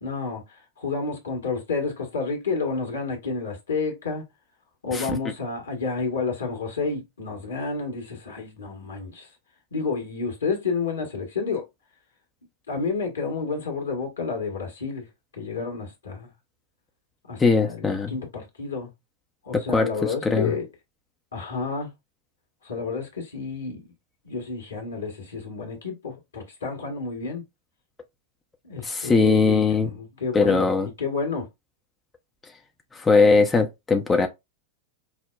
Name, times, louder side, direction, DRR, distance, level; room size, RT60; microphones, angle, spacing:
voice 1, 0.0-4.2 4.8-9.3 9.7-11.7 12.7-15.1 15.3-16.3 17.3-18.9 19.4-20.7 21.3-21.9 22.6-23.9 24.2-27.4 28.6-30.7 31.0-31.5, left 4 dB, 70° left, 1.3 m, -30 dB
voice 2, 17.4-18.1 19.5-20.5 28.8-29.9 30.3-30.9 32.9-34.3, left 4 dB, 15° left, 0.5 m, -20 dB
5.4 x 2.1 x 2.3 m
figure-of-eight pair, 90°, 0 cm